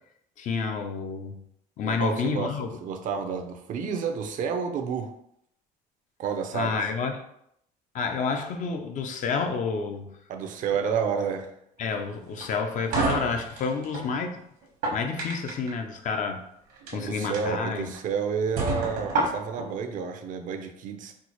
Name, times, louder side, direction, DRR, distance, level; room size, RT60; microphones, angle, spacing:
voice 1, 0.4-1.4 1.8-2.8 6.5-7.2 7.9-10.1 11.8-14.4 14.9-16.4 16.9-17.9, left 5 dB, 55° left, 6 dB, 0.5 m, -29 dB
voice 2, 1.8-2.5 2.8-5.1 6.2-6.8 10.3-11.5 16.9-21.1, right 6 dB, 55° right, 6 dB, 0.5 m, -30 dB
sound 1, 12.4-14.1 14.6-15.7 16.7-16.9 17.3-17.4 17.9-18.0 18.6-19.7, right 3 dB, 75° right, 1.1 m, -28 dB
4.3 x 2.0 x 2.9 m, 0.73 s
cardioid pair, 105°, 16 cm